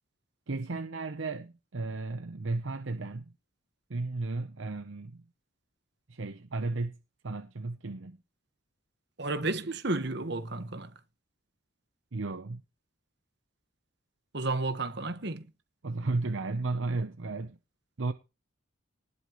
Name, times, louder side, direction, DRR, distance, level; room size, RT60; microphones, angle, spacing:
voice 1, 0.5-3.3 3.9-5.2 6.1-7.0 7.2-8.2 12.1-12.6 15.8-17.6 18.0-18.1, right 3 dB, 70° right, 0.8 m, -34 dB
voice 2, 9.2-10.9 14.3-15.5, right 2 dB, 55° right, 1.3 m, -32 dB
19.0 x 8.4 x 3.1 m
head